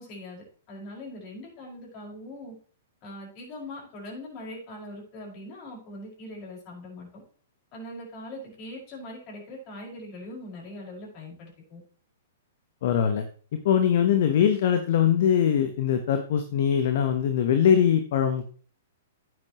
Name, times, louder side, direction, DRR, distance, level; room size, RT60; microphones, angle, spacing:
voice 1, 0.0-2.5 3.0-7.2 7.7-11.8, left 1 dB, 40° left, -2 dB, 5.5 m, -41 dB
voice 2, 12.8-13.2 13.6-18.5, left 8 dB, 60° left, 8 dB, 1.1 m, -22 dB
10.0 x 9.5 x 3.1 m, 0.43 s
hypercardioid pair, 120°, 0 cm